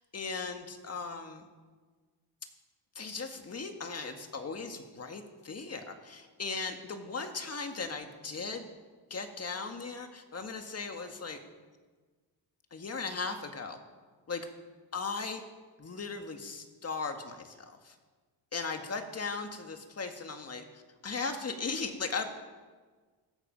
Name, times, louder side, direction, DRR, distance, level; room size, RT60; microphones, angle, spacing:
voice 1, 0.0-1.4 3.0-8.7 9.1-11.4 12.7-13.8 14.3-14.5 14.9-15.4 15.8-18.0 18.5-22.2, left 4 dB, 35° left, 5 dB, 1.8 m, -37 dB
16.5 x 13.0 x 5.3 m, 1.4 s
cardioid pair, 110°, 45 cm